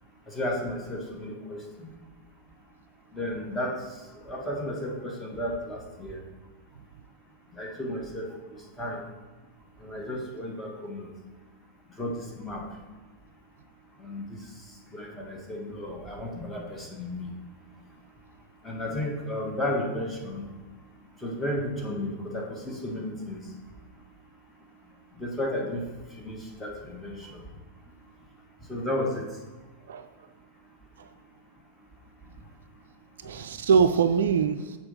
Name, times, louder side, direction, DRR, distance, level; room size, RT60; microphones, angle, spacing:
voice 1, 0.3-1.9 3.1-6.2 7.5-9.0 9.8-11.1 12.0-12.6 14.0-14.5 14.9-17.3 18.6-20.5 21.2-23.4 25.2-25.8 26.2-27.4 28.7-29.3, left 1 dB, 10° left, -1 dB, 1.5 m, -33 dB
voice 2, 33.2-34.8, right 6 dB, 60° right, 10 dB, 0.3 m, -23 dB
6.6 x 4.3 x 5.4 m, 1.2 s
figure-of-eight pair, 90°, 0 cm